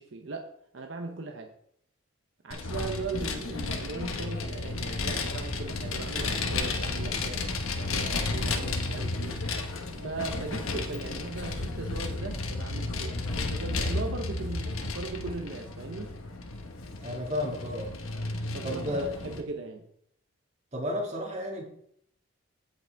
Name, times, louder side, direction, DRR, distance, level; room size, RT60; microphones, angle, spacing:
voice 1, 0.0-1.5 2.4-7.5 7.8-9.4 9.9-16.2 18.5-19.9, right 3 dB, 65° right, 3 dB, 0.8 m, -38 dB
Vehicle, 2.5-19.4, left 3 dB, 90° left, 1.0 m, -33 dB
voice 2, 17.0-18.0 18.6-19.0 20.7-21.6, left 1 dB, 35° right, 0 dB, 1.9 m, -32 dB
16.0 x 5.4 x 3.4 m, 0.69 s
head